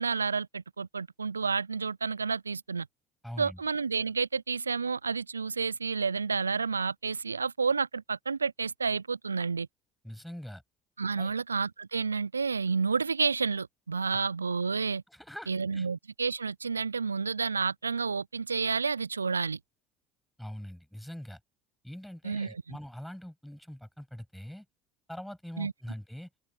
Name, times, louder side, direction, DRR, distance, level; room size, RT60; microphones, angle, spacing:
voice 1, 0.0-2.9 3.4-9.7 11.0-15.0 15.5-19.6 22.2-22.6 25.6-25.7, right 5 dB, 90° right, 0.4 m, -30 dB
voice 2, 3.2-3.6 10.0-10.6 11.2-11.3 14.1-14.2 15.1-15.9 20.4-21.4 21.8-24.7 25.1-26.3, equal, ahead, 7.6 m, -43 dB
open air
figure-of-eight pair, 65°, 0 cm